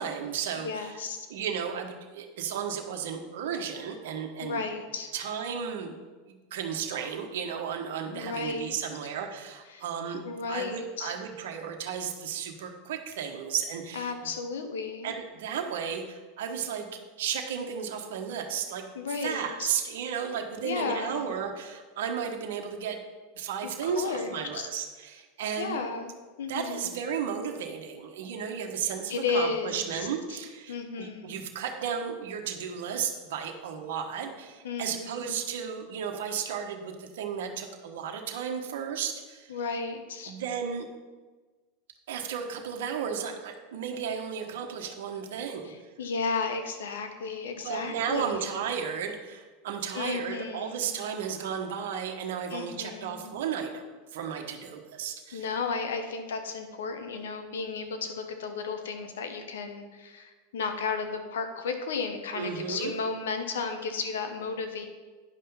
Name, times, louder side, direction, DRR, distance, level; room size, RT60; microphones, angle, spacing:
voice 1, 0.0-1.0 1.3-4.6 5.1-5.9 6.3-10.2 10.5-14.1 15.0-18.8 19.2-23.0 23.3-25.8 26.5-39.5 40.3-40.9 42.1-45.7 47.6-55.4 62.3-62.9, right 7 dB, 75° right, 3 dB, 1.2 m, -34 dB
voice 2, 0.6-1.3 4.4-5.1 8.1-8.7 9.7-9.8 10.2-11.1 13.9-15.1 18.9-19.7 20.6-21.3 23.6-24.7 25.6-26.1 26.4-26.9 29.1-30.1 30.7-31.3 34.6-35.4 39.5-40.3 45.6-48.5 49.9-50.9 52.5-53.3 55.3-64.8, left 4 dB, 80° left, 6 dB, 1.1 m, -34 dB
10.0 x 5.6 x 5.6 m, 1.3 s
hypercardioid pair, 100°, 0 cm